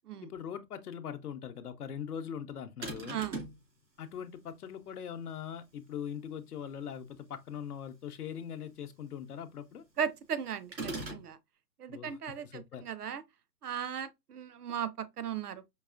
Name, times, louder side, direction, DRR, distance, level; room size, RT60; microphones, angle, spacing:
voice 1, 0.2-3.2 4.0-9.8 11.9-12.2 12.4-12.9, left 8 dB, 65° left, 0.7 m, -41 dB
sound 1, 2.8-3.6 10.7-11.3, right 2 dB, 85° right, 2.2 m, -38 dB
voice 2, 10.0-11.4 11.8-13.2 13.6-15.6, right 8 dB, 65° right, 0.6 m, -37 dB
4.7 x 2.7 x 2.4 m
hypercardioid pair, 175°, 50 cm